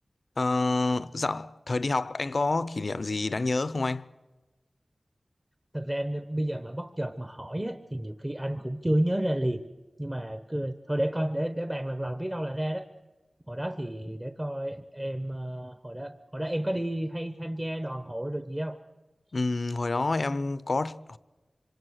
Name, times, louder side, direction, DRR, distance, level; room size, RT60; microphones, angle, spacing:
voice 1, 0.4-4.1 19.3-21.2, left 3 dB, 60° left, 0.7 m, -28 dB
voice 2, 5.7-9.6 10.0-12.8 13.5-18.8, right 1 dB, 20° right, 1.1 m, -31 dB
27.0 x 25.0 x 6.5 m
wide cardioid pair, 70°, 0 cm